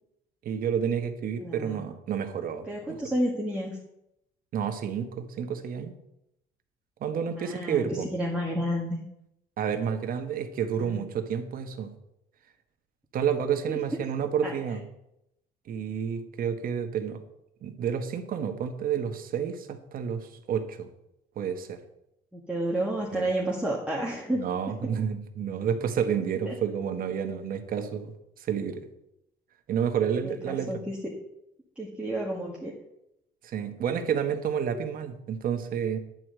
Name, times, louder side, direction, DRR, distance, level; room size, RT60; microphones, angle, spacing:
voice 1, 0.4-3.0 4.5-5.9 7.0-8.1 9.6-11.9 13.1-14.8 15.7-17.2 17.6-20.9 21.3-21.8 23.1-23.3 24.4-28.1 28.4-28.9 29.7-30.7 33.4-36.0, right 7 dB, 60° right, 7 dB, 1.4 m, -30 dB
voice 2, 1.3-1.8 2.6-3.8 7.4-9.0 10.8-11.1 13.7-13.8 14.4-14.8 22.3-24.5 26.5-26.6 30.2-31.0 31.8-32.7, right 1 dB, 5° right, -3 dB, 1.8 m, -31 dB
11.0 x 4.8 x 7.8 m, 0.83 s
cardioid pair, 110°, 17 cm